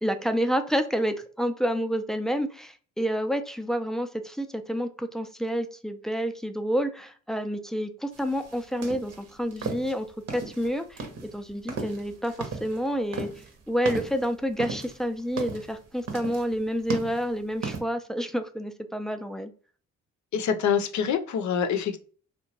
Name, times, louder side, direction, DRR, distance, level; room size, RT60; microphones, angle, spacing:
voice 1, 0.0-13.3 13.7-19.5, equal, ahead, 0.3 m, -29 dB
sound 1, 8.1-17.8, right 4 dB, 55° right, 0.8 m, -36 dB
voice 2, 20.3-22.0, left 7 dB, 70° left, 0.6 m, -25 dB
2.8 x 2.2 x 2.8 m
cardioid pair, 90°, 30 cm